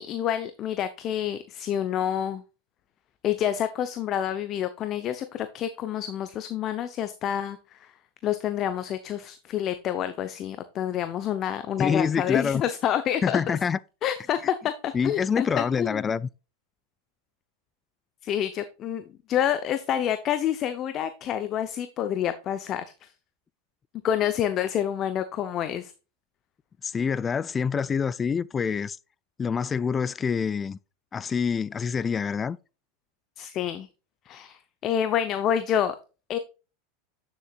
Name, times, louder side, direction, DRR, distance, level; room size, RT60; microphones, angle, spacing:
voice 1, 0.0-2.4 3.2-7.9 8.2-13.4 14.0-16.2 18.2-23.1 24.0-25.9 33.4-33.9 34.3-36.0 36.3-36.4, left 10 dB, 40° left, 0.7 m, -28 dB
voice 2, 11.8-12.6 13.2-13.8 14.9-16.3 26.8-29.0 29.4-30.8 31.1-32.6, left 6 dB, 25° left, 0.3 m, -26 dB
9.1 x 7.1 x 2.4 m
hypercardioid pair, 100°, 0 cm